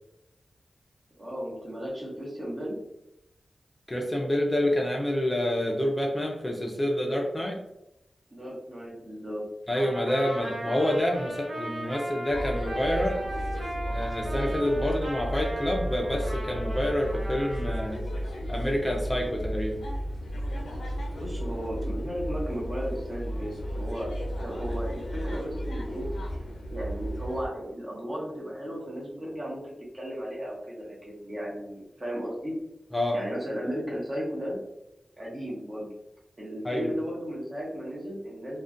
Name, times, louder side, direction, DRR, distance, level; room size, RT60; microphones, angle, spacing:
voice 1, 1.2-2.8 8.3-9.4 21.2-24.1 24.4-26.0 26.7-29.6 29.9-32.5 33.1-34.6 35.2-35.9 36.4-38.6, equal, 35° right, -5 dB, 0.9 m, -35 dB
voice 2, 3.9-7.6 9.7-13.2 13.9-18.0 18.5-19.8 32.9-33.2 36.6-37.0, left 1 dB, 15° left, 0 dB, 0.4 m, -28 dB
Trumpet, 9.7-17.9, right 1 dB, 80° right, 1.0 m, -37 dB
sound 1, 12.3-27.5, equal, 85° left, 0.4 m, -33 dB
2.4 x 2.1 x 2.5 m, 0.85 s
wide cardioid pair, 75°, 0 cm